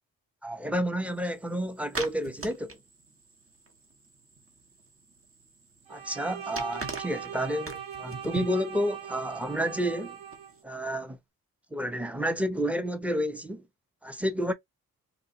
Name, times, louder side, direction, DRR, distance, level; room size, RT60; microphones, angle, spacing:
voice 1, 0.4-2.8 5.9-10.2 10.6-11.2 11.7-13.7 14.0-14.5, equal, 5° right, 0.7 m, -30 dB
sound 1, 1.1-10.6, right 4 dB, 40° right, 1.1 m, -44 dB
Bowed string instrument, 5.9-10.5, right 8 dB, 65° right, 1.1 m, -40 dB
3.0 x 2.3 x 4.1 m
cardioid pair, 60°, 36 cm